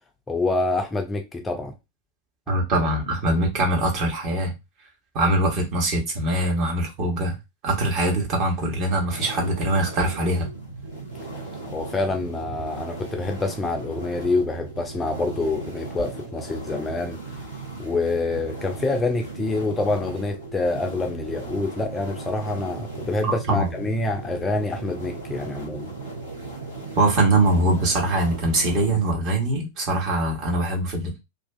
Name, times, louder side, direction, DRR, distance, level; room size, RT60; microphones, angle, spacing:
voice 1, 0.3-1.7 11.7-17.2 17.8-25.9, left 2 dB, 15° left, 0.4 m, -26 dB
voice 2, 2.5-4.5 5.1-7.3 7.6-10.5 23.2-23.7 27.0-31.2, right 2 dB, 40° right, 1.0 m, -22 dB
sound 1, 9.1-28.9, right 3 dB, 85° right, 1.0 m, -37 dB
2.4 x 2.4 x 2.3 m
figure-of-eight pair, 90°, 0 cm